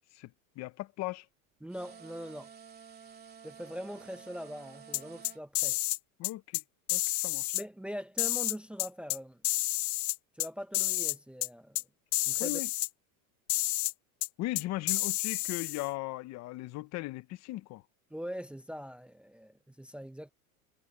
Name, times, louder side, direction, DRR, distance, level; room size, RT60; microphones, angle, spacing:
voice 1, 0.6-1.3 6.2-6.6 6.9-7.6 12.4-12.7 14.4-17.8, left 18 dB, 40° left, 1.0 m, -38 dB
voice 2, 1.6-2.5 3.4-5.8 7.5-9.4 10.4-11.8 12.2-12.6 18.1-20.3, equal, 5° right, 0.8 m, -42 dB
sound 1, 1.7-5.4, right 7 dB, 20° right, 3.0 m, -52 dB
sound 2, 4.9-6.0 6.2-6.6 6.9-7.6 8.2-9.2 9.4-10.5 10.7-11.2 11.4-11.5 11.8-11.9 12.1-12.9 13.5-13.9 14.2-14.3 14.6-15.9, left 18 dB, 85° left, 0.9 m, -30 dB
supercardioid pair, 135°, 42 cm